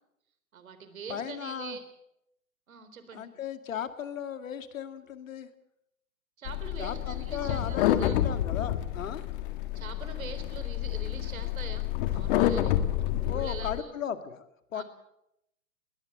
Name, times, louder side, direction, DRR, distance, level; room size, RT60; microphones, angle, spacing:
voice 1, 0.5-1.8 2.7-3.3 6.4-8.2 9.7-13.9 14.7-14.8, right 6 dB, 70° right, 10 dB, 4.0 m, -43 dB
voice 2, 1.1-1.8 3.1-5.5 6.8-9.2 13.3-14.8, left 8 dB, 65° left, 9 dB, 2.3 m, -36 dB
sound 1, 6.5-13.8, left 12 dB, 35° left, 1.6 m, -29 dB
21.0 x 19.5 x 7.8 m, 0.82 s
hypercardioid pair, 130°, 43 cm